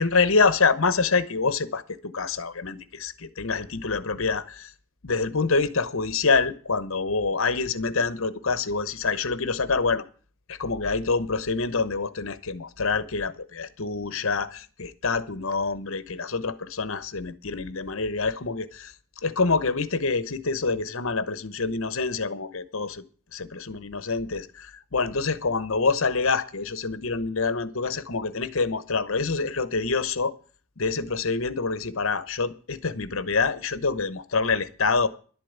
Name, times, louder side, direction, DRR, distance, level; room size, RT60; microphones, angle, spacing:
voice 1, 0.0-4.7 5.0-10.0 10.5-18.9 19.2-23.0 23.5-30.3 30.8-35.1, left 4 dB, 65° left, 1.0 m, -26 dB
11.5 x 8.4 x 8.1 m
head